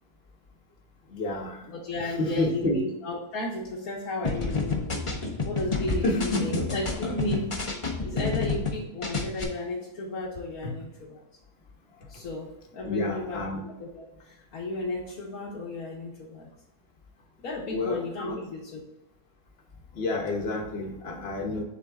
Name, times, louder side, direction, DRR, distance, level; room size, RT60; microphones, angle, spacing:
voice 1, 1.1-1.6 2.0-2.8 6.0-6.6 10.6-10.7 12.8-13.6 17.7-18.4 19.9-21.6, left 2 dB, 45° left, 2 dB, 1.3 m, -29 dB
voice 2, 1.7-4.9 5.4-7.6 8.0-11.2 12.1-16.5 17.4-18.8, left 2 dB, 70° left, -4 dB, 1.5 m, -34 dB
sound 1, 4.2-8.7 9.0-9.4, left 4 dB, 25° left, 0.8 m, -29 dB
7.1 x 3.8 x 3.6 m, 0.92 s
omnidirectional pair, 1.6 m